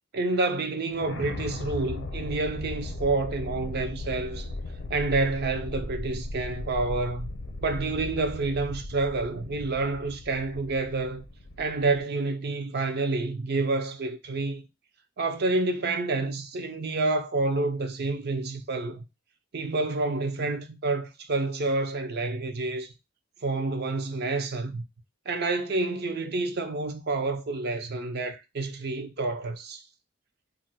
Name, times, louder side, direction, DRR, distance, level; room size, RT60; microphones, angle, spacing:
voice 1, 0.1-4.5 4.9-7.3 7.6-11.2 11.6-14.6 15.2-19.0 19.5-22.9 23.4-24.8 25.3-29.8, right 3 dB, 55° right, 0.5 m, -28 dB
sound 1, 0.9-12.0, left 2 dB, 80° left, 0.6 m, -37 dB
2.5 x 2.2 x 4.0 m
head